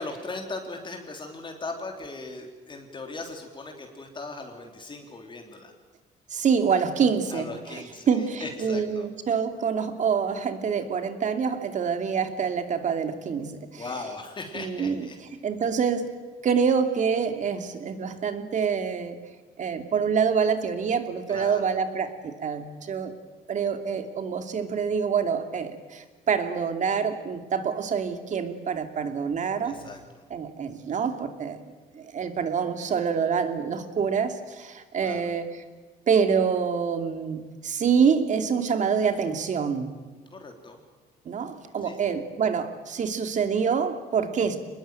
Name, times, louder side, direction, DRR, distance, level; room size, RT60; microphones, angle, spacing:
voice 1, 0.0-5.7 7.3-9.1 13.7-15.2 21.3-21.8 29.6-30.2 35.0-35.3 40.3-40.8 41.8-42.0, left 3 dB, 30° left, 3 dB, 3.3 m, -38 dB
voice 2, 6.3-13.8 14.5-15.1 15.4-16.1 16.4-19.2 19.6-23.1 23.5-29.8 30.3-35.5 36.1-39.9 41.2-44.6, right 6 dB, 45° right, 8 dB, 2.7 m, -26 dB
24.5 x 20.5 x 9.1 m, 1.3 s
cardioid pair, 110°, 17 cm